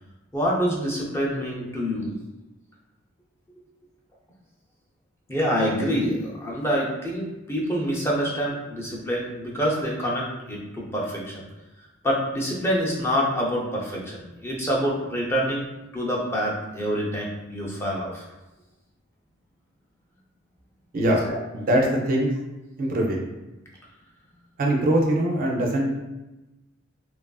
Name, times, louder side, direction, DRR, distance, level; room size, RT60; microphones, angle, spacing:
voice 1, 0.3-2.2 5.3-11.4 12.0-15.6 15.9-18.3 21.3-21.4, equal, 10° left, -4 dB, 0.5 m, -26 dB
voice 2, 21.5-22.3 22.8-23.3 24.6-26.0, right 1 dB, 45° right, 0 dB, 0.4 m, -22 dB
2.9 x 2.4 x 2.3 m, 1.0 s
head